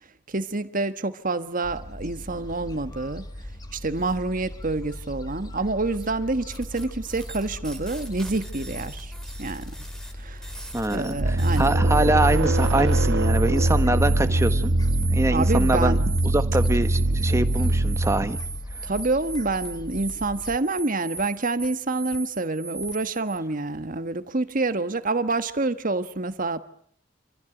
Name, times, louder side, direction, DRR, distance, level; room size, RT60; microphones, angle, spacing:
voice 1, 0.3-3.2 3.7-9.1 9.4-9.7 10.2-10.5 10.9-11.7 15.3-16.0 18.8-26.6, right 3 dB, 50° right, 1.4 m, -27 dB
Gull seagull, 1.6-20.6, left 1 dB, 20° left, 1.7 m, -39 dB
sound 1, 6.5-23.4, right 4 dB, 5° left, 2.8 m, -39 dB
voice 2, 10.7-14.7 15.1-16.0 16.3-18.4, right 1 dB, 15° right, 1.4 m, -24 dB
sound 2, 11.2-18.6, right 1 dB, 80° right, 1.2 m, -22 dB
27.5 x 15.5 x 9.1 m
head